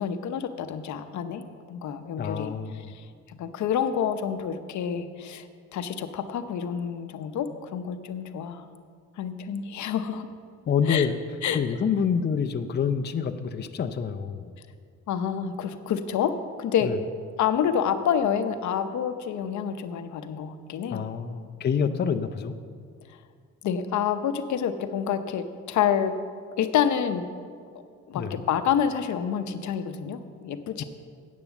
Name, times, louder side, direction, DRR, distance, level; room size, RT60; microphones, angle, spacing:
voice 1, 0.0-1.4 1.7-5.5 5.7-8.7 9.2-10.3 10.9-11.1 11.4-11.6 15.1-16.9 17.4-21.0 21.8-22.0 23.6-26.1 26.6-27.3 28.1-30.8, left 8 dB, 70° left, 9 dB, 0.8 m, -28 dB
voice 2, 2.2-2.9 10.7-11.2 11.5-14.5 16.8-17.0 20.9-22.6 28.1-28.4 30.8-30.9, left 6 dB, 35° left, 8 dB, 0.6 m, -27 dB
8.9 x 8.4 x 7.1 m, 2.2 s
cardioid pair, 90°, 30 cm